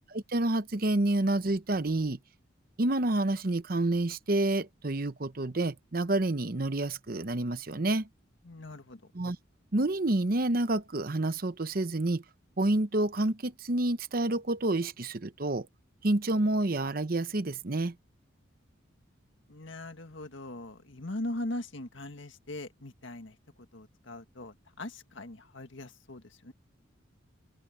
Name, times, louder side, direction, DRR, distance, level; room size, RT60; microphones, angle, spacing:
voice 1, 0.1-2.2 2.8-8.1 9.1-9.4 9.7-12.2 12.6-15.7 16.0-17.9, right 2 dB, 45° right, 0.8 m, -28 dB
voice 2, 8.4-9.0 19.5-23.4 23.7-26.5, left 1 dB, 70° left, 1.8 m, -40 dB
open air
head